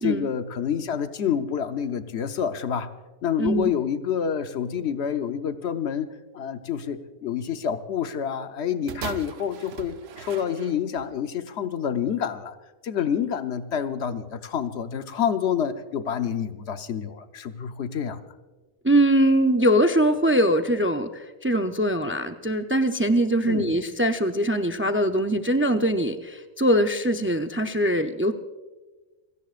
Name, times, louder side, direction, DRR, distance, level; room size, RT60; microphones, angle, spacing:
voice 1, 0.0-2.9 3.2-12.5 12.8-18.2 23.4-23.7, left 8 dB, 85° left, 9 dB, 1.1 m, -28 dB
voice 2, 3.4-3.7 18.8-28.3, right 1 dB, 15° right, 6 dB, 0.4 m, -22 dB
sound 1, 8.9-11.1 11.9-12.0, right 7 dB, 75° right, 0.9 m, -39 dB
29.0 x 17.0 x 2.5 m, 1.2 s
omnidirectional pair, 1.1 m